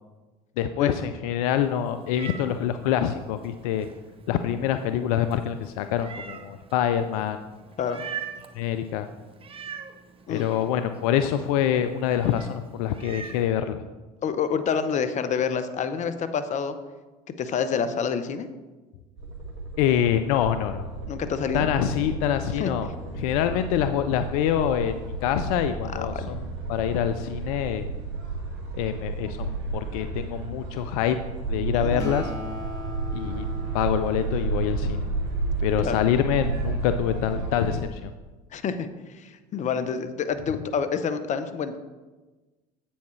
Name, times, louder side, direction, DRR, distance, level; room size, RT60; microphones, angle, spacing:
voice 1, 0.6-3.9 4.3-7.4 8.5-9.1 10.3-13.8 19.8-20.8 21.5-22.9 23.2-27.9 28.7-31.2 31.5-32.3 33.1-33.4 33.7-35.0 35.6-38.1, left 10 dB, 70° left, 10 dB, 0.4 m, -25 dB
Meow, 1.4-13.5, right 7 dB, 30° right, 0.7 m, -43 dB
voice 2, 14.2-16.8 17.4-18.5 21.1-21.7 22.6-22.7 25.9-26.3 31.8-32.1 35.8-36.0 38.5-38.9 39.1-41.8, left 6 dB, 40° left, 11 dB, 0.7 m, -28 dB
sound 1, 19.2-37.8, right 3 dB, 60° right, 1.8 m, -32 dB
Acoustic guitar, 32.0-35.7, equal, 20° left, 2.7 m, -39 dB
8.2 x 7.1 x 3.2 m, 1.2 s
hypercardioid pair, 70°, 19 cm